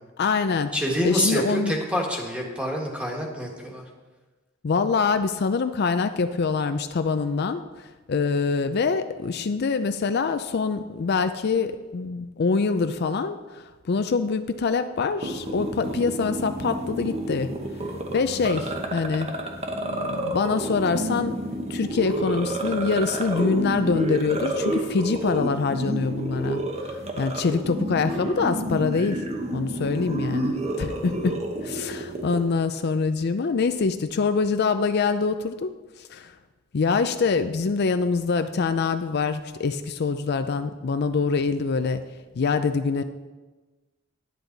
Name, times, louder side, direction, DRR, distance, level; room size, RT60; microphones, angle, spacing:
voice 1, 0.2-0.7 1.0-1.7 4.6-7.6 8.1-17.5 18.1-19.3 19.8-21.4 21.7-26.6 26.9-29.2 29.5-31.3 31.6-35.7 36.1-36.3 36.7-42.0 42.4-43.0, left 4 dB, 55° left, 9 dB, 0.4 m, -25 dB
voice 2, 0.7-3.8, equal, 5° right, -1 dB, 1.7 m, -27 dB
sound 1, 15.2-32.4, right 1 dB, 35° right, 1.1 m, -30 dB
10.0 x 10.0 x 4.0 m, 1.2 s
head